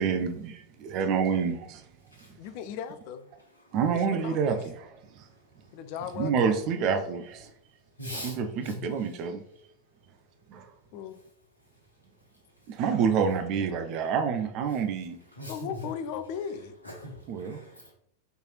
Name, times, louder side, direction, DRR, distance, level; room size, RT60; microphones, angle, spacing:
voice 1, 0.0-1.8 3.7-5.2 6.2-7.5 8.1-9.4 10.5-10.7 12.7-15.2 17.3-17.6, right 6 dB, 40° right, 0.4 m, -28 dB
voice 2, 2.4-3.3 3.9-4.6 5.7-6.6 10.9-11.2 15.5-16.8, left 8 dB, 45° left, 0.3 m, -37 dB
voice 3, 8.0-8.8 15.4-15.7 16.8-17.9, left 1 dB, 85° left, 1.0 m, -40 dB
4.4 x 3.2 x 2.4 m
figure-of-eight pair, 90°, 0 cm